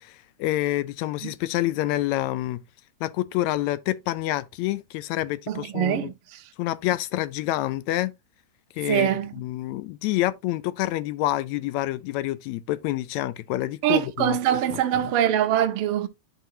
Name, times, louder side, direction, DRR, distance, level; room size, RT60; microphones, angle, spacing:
voice 1, 0.0-2.6 3.0-6.1 6.6-8.1 8.8-14.4 14.7-15.1, left 15 dB, 80° left, 1.8 m, -27 dB
voice 2, 5.5-6.4 8.9-9.3 13.8-16.1, right 11 dB, 80° right, 1.2 m, -24 dB
11.0 x 4.7 x 2.7 m
omnidirectional pair, 3.5 m